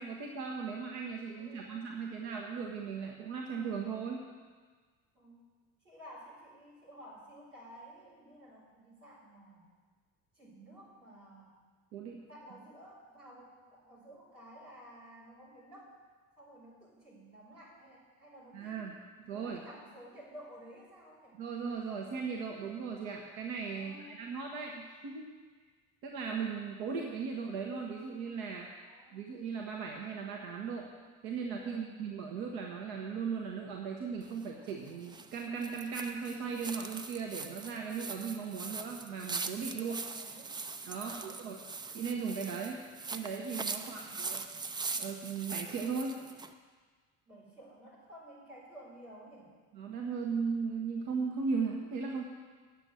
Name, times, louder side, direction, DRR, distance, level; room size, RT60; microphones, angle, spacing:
voice 1, 0.0-4.3 11.9-12.2 18.5-19.0 19.3-19.6 21.4-25.3 26.0-28.7 29.1-30.9 31.2-40.0 40.8-41.6 41.9-42.8 43.1-44.4 45.0-46.1 49.7-52.2, right 5 dB, 55° right, 1 dB, 1.1 m, -37 dB
voice 2, 1.4-2.0 5.1-5.5 5.8-9.6 10.3-11.6 12.2-16.0 16.4-18.9 19.3-21.4 23.7-24.4 28.8-29.3 31.6-32.0 39.7-40.6 40.9-41.4 43.7-44.3 47.3-49.5, equal, 85° right, -8 dB, 4.0 m, -53 dB
sound 1, 34.2-46.5, right 4 dB, 10° right, 0.4 m, -42 dB
9.0 x 7.0 x 7.7 m, 1.5 s
figure-of-eight pair, 55°, 43 cm